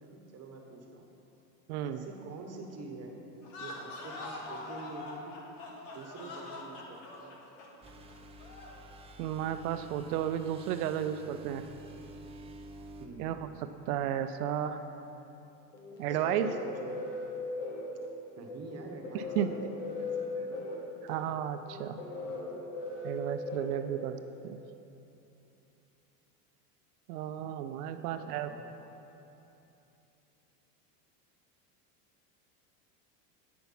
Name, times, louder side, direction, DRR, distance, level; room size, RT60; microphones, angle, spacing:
voice 1, 0.0-1.1 1.8-3.2 3.5-5.4 5.9-7.3 13.0-13.3 16.1-17.0 18.4-20.7 28.1-28.6, right 3 dB, 30° right, 2 dB, 1.2 m, -46 dB
voice 2, 1.7-2.0 9.2-11.6 13.2-13.4 13.6-14.8 16.0-16.5 19.4-19.5 21.0-22.0 23.0-24.6 27.1-28.5, right 10 dB, 70° right, 9 dB, 0.5 m, -33 dB
sound 1, 3.4-8.9, left 2 dB, 65° left, 1.6 m, -44 dB
sound 2, 7.8-13.1, right 2 dB, 15° right, 0.4 m, -50 dB
sound 3, 15.7-24.4, left 3 dB, 80° left, 1.8 m, -39 dB
9.4 x 5.7 x 5.6 m, 3.0 s
supercardioid pair, 105°, 47 cm